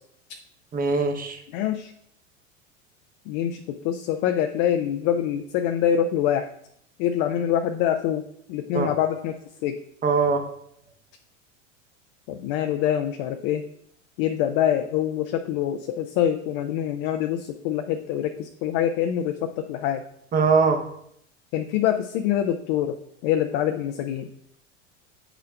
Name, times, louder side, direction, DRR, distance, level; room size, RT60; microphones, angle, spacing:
voice 1, 0.7-1.4 8.7-8.9 10.0-10.4 20.3-20.8, right 4 dB, 20° right, 4 dB, 0.9 m, -21 dB
voice 2, 1.5-1.9 3.3-6.5 7.0-8.2 8.5-9.8 12.3-13.7 14.2-20.0 21.5-23.0 23.2-24.3, left 10 dB, 40° left, 6 dB, 0.5 m, -25 dB
8.2 x 5.9 x 2.3 m, 0.71 s
figure-of-eight pair, 85°, 38 cm